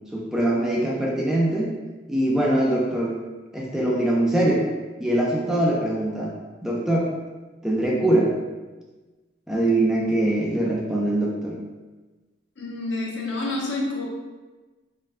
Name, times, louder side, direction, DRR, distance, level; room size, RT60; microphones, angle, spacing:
voice 1, 0.1-1.7 2.1-3.2 3.5-4.7 5.0-6.3 6.6-7.1 7.6-8.3 9.5-11.6, right 1 dB, 5° right, -4 dB, 0.5 m, -22 dB
voice 2, 12.6-14.0, left 2 dB, 80° left, -3 dB, 0.9 m, -28 dB
4.2 x 3.1 x 2.5 m, 1.2 s
head